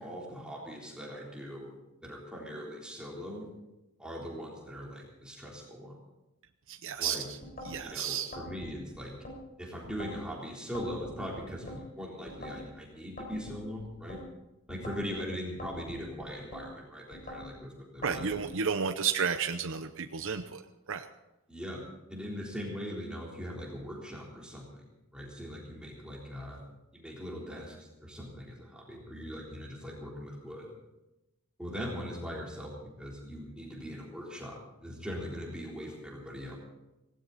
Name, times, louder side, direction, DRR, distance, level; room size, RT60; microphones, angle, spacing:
voice 1, 0.0-3.5 4.0-6.0 7.0-7.3 7.8-9.1 9.6-14.2 14.7-18.3 21.5-24.9 25.1-26.6 26.9-30.7 31.6-36.6, equal, 5° right, -3 dB, 3.6 m, -41 dB
voice 2, 6.7-7.4 7.6-8.3 18.0-20.6 20.9-21.1, right 6 dB, 60° right, 7 dB, 0.8 m, -32 dB
sound 1, 7.4-7.8 8.3-9.4 9.8-10.3 10.7-11.8 12.3-12.7 13.2-14.2 14.7-15.1 15.6-16.7 17.1-17.5 18.0-18.5, left 1 dB, 40° left, 4.6 m, -44 dB
18.5 x 17.0 x 4.2 m, 0.98 s
head